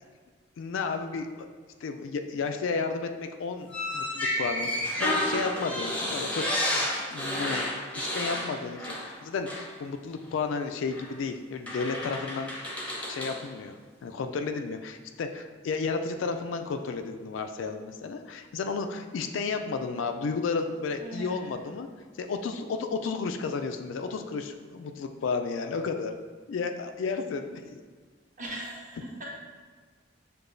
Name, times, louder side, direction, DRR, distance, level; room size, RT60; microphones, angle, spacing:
voice 1, 0.6-1.5 1.8-6.5 6.7-7.6 8.0-12.5 13.1-13.8 14.0-21.9 22.2-26.1 26.5-27.8, left 4 dB, 75° left, 6 dB, 0.3 m, -32 dB
sound 1, 3.7-9.2 9.5-9.7 10.9-11.1 11.7-13.4, left 1 dB, 5° left, 0.6 m, -31 dB
voice 2, 21.0-21.5 28.4-29.2, right 1 dB, 40° right, -5 dB, 1.0 m, -39 dB
6.6 x 2.3 x 2.5 m, 1.5 s
head